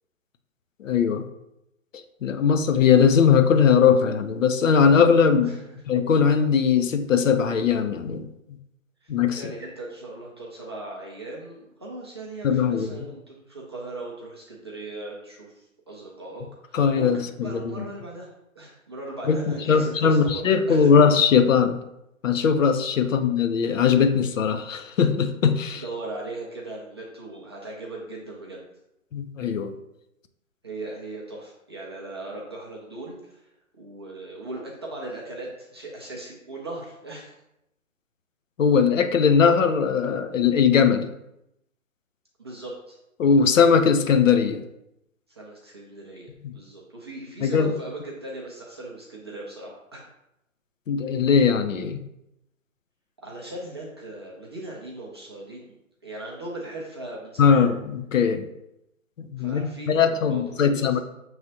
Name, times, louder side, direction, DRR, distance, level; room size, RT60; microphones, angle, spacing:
voice 1, 0.8-1.2 2.2-5.5 5.9-8.3 9.1-9.4 12.4-12.9 16.7-17.8 19.3-21.8 22.2-25.8 29.1-29.7 38.6-41.1 43.2-44.6 46.4-46.5 47.4-47.7 50.9-52.0 57.4-58.5 59.2-61.0, left 6 dB, 65° left, 8 dB, 0.6 m, -20 dB
voice 2, 9.0-18.3 18.5-20.9 23.0-23.2 25.7-28.6 30.6-33.4 33.8-37.4 42.4-43.0 45.3-50.1 53.2-55.7 56.0-57.7 59.4-61.0, right 2 dB, 20° right, -4 dB, 0.4 m, -38 dB
6.2 x 3.1 x 2.7 m, 0.85 s
hypercardioid pair, 145°, 41 cm